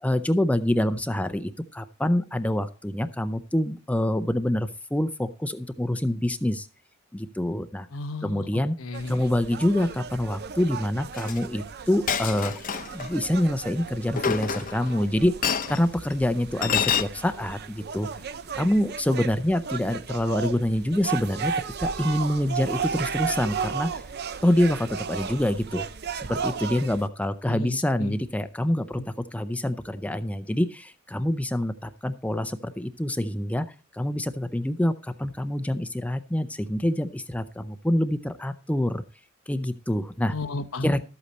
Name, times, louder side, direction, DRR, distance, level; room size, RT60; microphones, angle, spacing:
voice 1, 0.0-6.7 7.1-7.9 8.2-8.7 9.1-12.5 12.9-15.3 15.7-18.1 18.5-21.5 21.8-24.0 24.4-25.9 26.1-33.6 33.9-39.0 39.5-40.3 40.8-41.0, left 1 dB, 5° left, 10 dB, 0.5 m, -26 dB
voice 2, 7.9-9.3 27.5-28.2 29.0-29.1 34.1-34.2 40.3-41.0, left 2 dB, 90° left, 10 dB, 1.0 m, -34 dB
sound 1, 8.9-27.1, right 6 dB, 55° right, 0.6 m, -35 dB
Chink clink, 11.2-11.4 12.1-13.1 14.2-14.9 15.4-15.8 16.6-17.0, left 7 dB, 45° left, 0.8 m, -26 dB
13.0 x 8.3 x 4.2 m, 0.33 s
head